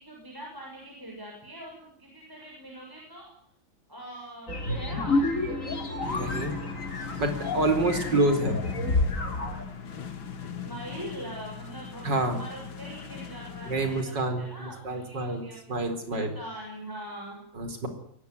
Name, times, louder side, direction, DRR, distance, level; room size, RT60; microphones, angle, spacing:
voice 1, 0.0-3.3 3.9-5.2 8.4-8.7 10.6-15.8 16.1-17.4, right 1 dB, 10° right, -1 dB, 6.9 m, -42 dB
sound 1, 4.5-9.6, left 2 dB, 40° left, 3.6 m, -29 dB
sound 2, 6.0-14.0, left 7 dB, 85° left, 2.6 m, -39 dB
voice 2, 6.1-6.6 7.2-8.5 12.0-12.4 13.7-15.4 15.7-16.4 17.5-17.9, right 2 dB, 65° right, 8 dB, 4.9 m, -27 dB
22.5 x 19.5 x 9.8 m, 0.66 s
omnidirectional pair, 2.1 m